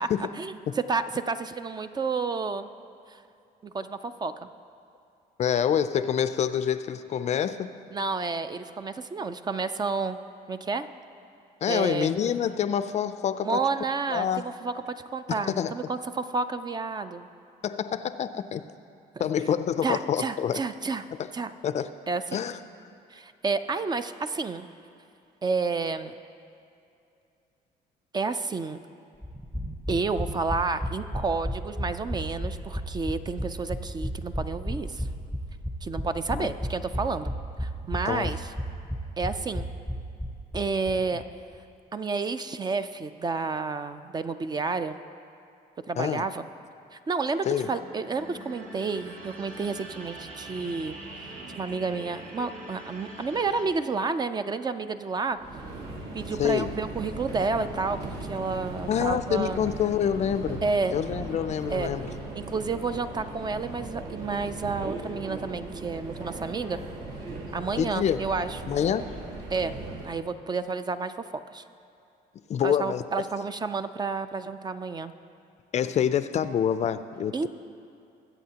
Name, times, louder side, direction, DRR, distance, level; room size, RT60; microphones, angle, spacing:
voice 1, 0.9-2.7 3.1-3.2 3.6-4.3 7.9-10.2 10.5-10.9 11.7-12.1 13.4-14.7 15.1-17.3 19.2-19.3 19.8-21.0 21.3-21.5 22.1-22.4 23.1-24.7 25.4-26.2 28.1-28.8 29.9-35.1 35.8-37.3 37.6-38.5 39.2-39.7 40.5-41.2 41.9-44.9 45.9-46.4 46.9-51.0 51.6-55.4 56.1-59.6 60.6-61.0 61.7-61.9 62.3-66.8 67.5-68.6 69.5-69.7 70.0-71.3 71.5-71.6 72.6-75.1 77.3-77.5, right 4 dB, 25° right, 11 dB, 0.4 m, -30 dB
voice 2, 5.4-7.7 11.6-13.7 14.1-14.4 15.3-15.7 17.6-18.6 19.2-20.6 21.2-21.3 21.6-21.9 22.3-22.6 36.4-36.5 38.0-38.3 46.0-46.2 47.5-47.7 56.4-56.7 58.9-60.6 60.9-62.1 67.7-68.2 68.7-69.2 72.5-73.0 75.7-77.5, left 8 dB, 40° left, 12 dB, 0.4 m, -27 dB
sound 1, 29.2-40.9 41.2-41.3 41.5-41.6, equal, 5° right, 0.8 m, -33 dB
sound 2, 47.4-53.7, right 2 dB, 50° right, 2.1 m, -43 dB
Subway metro underground, 55.4-70.2, right 2 dB, 65° right, 1.8 m, -38 dB
21.0 x 8.1 x 2.9 m, 2.6 s
cardioid pair, 110°, 17 cm